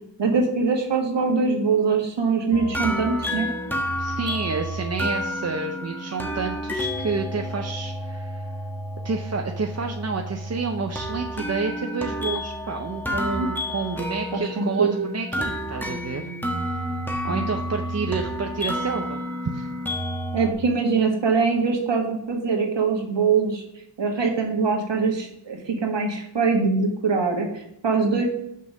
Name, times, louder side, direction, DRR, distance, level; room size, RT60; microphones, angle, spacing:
voice 1, 0.2-3.5 13.4-13.5 14.3-14.9 17.3-17.5 20.3-23.6 24.0-28.2, right 4 dB, 70° right, 1 dB, 1.8 m, -23 dB
sound 1, 2.5-20.5, equal, 5° left, 1.2 m, -30 dB
voice 2, 4.0-8.5 9.0-16.3 16.6-16.9 17.2-19.2 19.5-19.7, right 4 dB, 35° right, 3 dB, 0.7 m, -29 dB
6.3 x 5.5 x 5.2 m, 0.80 s
wide cardioid pair, 75°, 45 cm